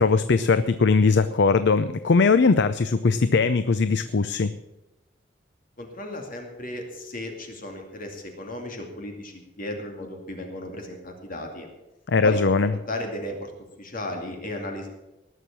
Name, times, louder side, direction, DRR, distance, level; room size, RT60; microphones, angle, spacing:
voice 1, 0.0-4.5 12.1-12.7, left 4 dB, 65° left, 12 dB, 0.5 m, -20 dB
voice 2, 5.8-11.7 12.2-12.6 12.9-13.5 13.8-14.9, left 1 dB, 50° left, 3 dB, 2.5 m, -35 dB
19.5 x 6.5 x 7.3 m, 0.98 s
head